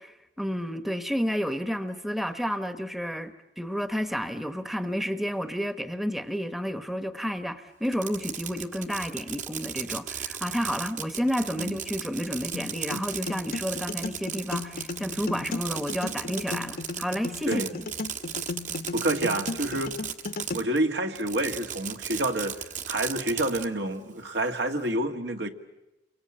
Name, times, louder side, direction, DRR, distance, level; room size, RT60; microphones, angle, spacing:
voice 1, 0.0-17.8, equal, ahead, 10 dB, 1.0 m, -31 dB
Fireworks, 7.8-20.8 21.1-23.7, right 8 dB, 45° right, 1.4 m, -36 dB
sound 1, 12.5-20.5, left 3 dB, 55° left, 1.0 m, -35 dB
voice 2, 18.9-20.0 20.5-25.5, right 1 dB, 75° right, 5 dB, 2.0 m, -28 dB
29.0 x 23.5 x 8.7 m, 0.97 s
head